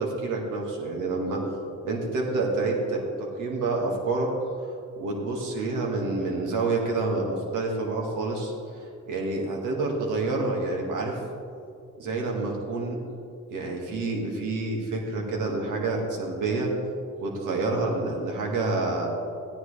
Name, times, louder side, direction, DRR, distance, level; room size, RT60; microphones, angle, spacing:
voice 1, 0.0-1.4 1.8-4.3 5.0-11.2 12.0-13.0 13.5-16.7 17.2-19.1, right 3 dB, 90° right, 0 dB, 1.9 m, -28 dB
15.5 x 10.0 x 3.3 m, 2.5 s
cardioid pair, 90°, 30 cm